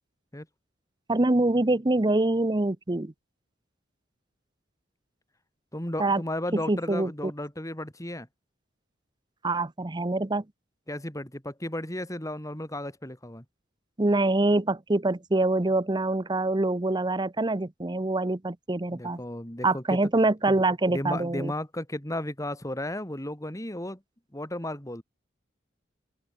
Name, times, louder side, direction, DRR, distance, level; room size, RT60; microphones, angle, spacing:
voice 1, 1.1-3.1 6.0-6.2 6.5-7.1 9.4-10.4 14.0-19.2 19.6-21.5, right 2 dB, 20° right, 0.7 m, -25 dB
voice 2, 5.7-8.3 10.9-13.4 18.9-20.0 20.5-20.6 20.9-24.0 24.3-25.0, left 1 dB, 15° left, 3.3 m, -34 dB
open air
head